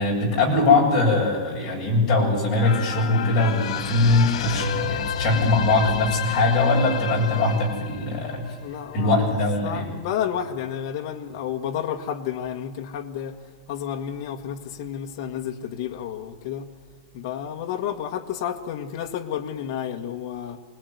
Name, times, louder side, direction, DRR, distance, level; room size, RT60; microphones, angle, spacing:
voice 1, 0.0-8.4 8.9-9.9, left 2 dB, 25° left, 7.9 m, -21 dB
sound 1, 2.6-9.3 9.7-9.8, left 8 dB, 90° left, 1.7 m, -31 dB
voice 2, 8.6-13.4 13.7-16.7 17.1-20.6, left 9 dB, 45° left, 1.7 m, -31 dB
26.0 x 20.5 x 9.6 m
supercardioid pair, 175°, 3 cm